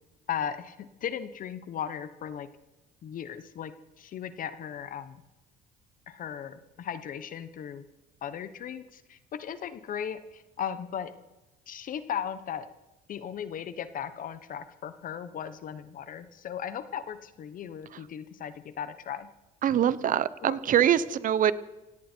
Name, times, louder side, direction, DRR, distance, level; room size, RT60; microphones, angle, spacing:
voice 1, 0.3-2.5 3.0-3.7 4.0-5.2 6.1-7.8 8.2-11.1 11.7-12.7 13.1-19.3 20.4-20.6, left 8 dB, 55° left, 12 dB, 1.1 m, -37 dB
voice 2, 19.6-21.5, right 10 dB, 50° right, 17 dB, 1.0 m, -24 dB
17.5 x 17.5 x 4.5 m, 0.99 s
cardioid pair, 110°, 17 cm